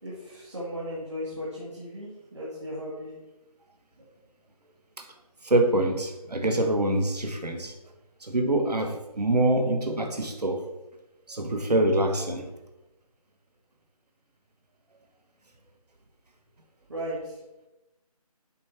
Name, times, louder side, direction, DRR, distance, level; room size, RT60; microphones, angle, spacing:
voice 1, 0.0-3.1 4.0-4.1 16.9-17.4, equal, 45° right, -6 dB, 1.9 m, -36 dB
voice 2, 5.4-7.7 8.2-10.6 11.3-12.4, right 1 dB, 85° right, 5 dB, 1.4 m, -25 dB
7.5 x 4.6 x 4.4 m, 0.99 s
figure-of-eight pair, 175°, 20 cm